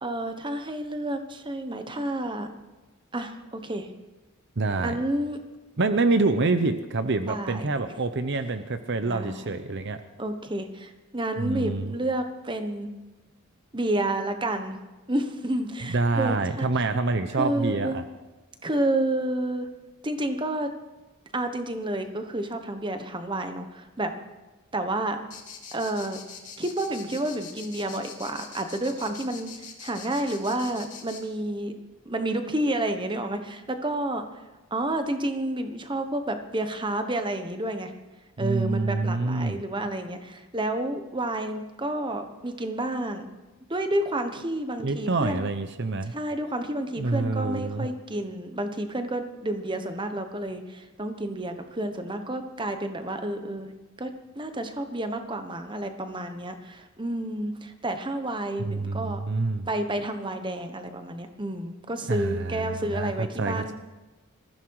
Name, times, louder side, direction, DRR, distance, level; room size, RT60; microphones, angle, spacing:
voice 1, 0.0-2.5 3.1-3.9 4.8-5.4 7.3-7.6 9.0-9.5 10.2-12.9 13.7-14.8 15.1-16.7 17.3-18.0 18.6-19.7 20.0-20.7 21.3-24.1 24.7-25.2 25.7-26.2 26.6-29.5 29.8-31.7 32.0-34.2 34.7-37.9 38.4-43.3 43.7-45.4 46.1-53.7 54.0-59.2 59.7-63.7, right 1 dB, 20° right, 7 dB, 1.2 m, -30 dB
voice 2, 4.6-5.0 5.8-10.0 11.4-12.0 15.9-18.0 38.4-39.6 44.8-46.1 47.0-47.9 58.6-59.7 62.1-63.7, right 3 dB, 55° right, 9 dB, 0.8 m, -26 dB
sound 1, 25.3-31.2, left 7 dB, 35° left, 2.9 m, -43 dB
20.5 x 14.5 x 4.8 m, 1.2 s
head